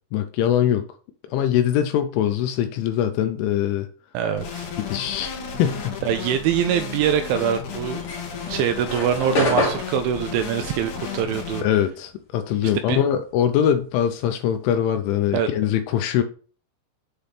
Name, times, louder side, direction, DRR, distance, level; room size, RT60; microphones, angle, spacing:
voice 1, 0.1-0.8 1.3-3.9 4.9-5.9 11.6-16.2, left 10 dB, 85° left, 2.8 m, -22 dB
voice 2, 4.1-4.7 6.0-8.0 8.5-11.7 12.9-13.0 15.3-15.5, right 9 dB, 85° right, 2.7 m, -23 dB
sound 1, 4.4-11.6, left 6 dB, 65° left, 2.0 m, -33 dB
sound 2, 7.9-12.6 12.9-14.9, left 1 dB, 50° left, 1.7 m, -28 dB
8.0 x 3.4 x 5.6 m
omnidirectional pair, 5.8 m